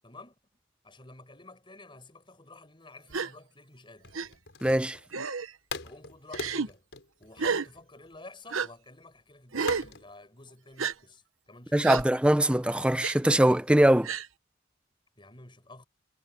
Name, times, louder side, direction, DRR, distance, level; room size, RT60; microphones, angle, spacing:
voice 1, 0.0-0.3 0.8-4.1 5.8-6.9 7.2-11.9 15.2-15.8, left 2 dB, 25° left, 6.4 m, -50 dB
Gasp, 3.1-3.3 4.1-4.3 5.1-5.5 6.3-6.7 7.4-7.7 8.5-8.7 9.5-9.9 10.8-10.9 11.8-12.0 13.0-13.2 14.0-14.3, right 5 dB, 90° right, 1.1 m, -30 dB
sound 1, 4.0-5.2 5.7-8.2 9.7-10.1, left 3 dB, 60° left, 6.0 m, -40 dB
voice 2, 4.6-5.0 11.7-14.1, right 1 dB, 5° right, 0.6 m, -22 dB
head